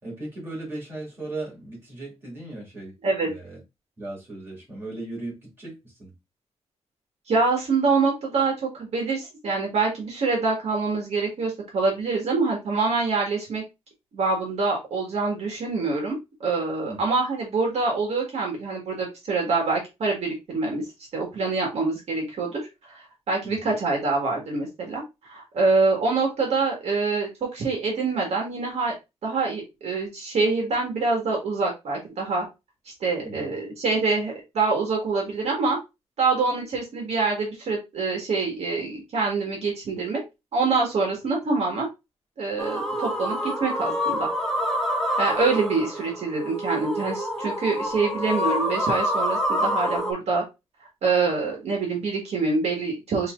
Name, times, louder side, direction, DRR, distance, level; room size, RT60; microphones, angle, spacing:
voice 1, 0.0-2.9 3.2-3.6 4.0-6.1 16.9-17.0 23.4-23.7 33.2-33.6, right 2 dB, 20° right, 2.5 m, -37 dB
voice 2, 7.3-13.6 14.1-20.8 21.1-22.6 22.9-28.9 29.2-32.4 33.0-35.8 36.2-40.2 40.5-41.9 42.4-44.3 45.2-50.4 51.0-53.3, right 4 dB, 70° right, 1.6 m, -25 dB
sound 1, 42.6-50.1, equal, 5° left, 0.7 m, -27 dB
5.7 x 2.8 x 2.5 m
wide cardioid pair, 180°, 11 cm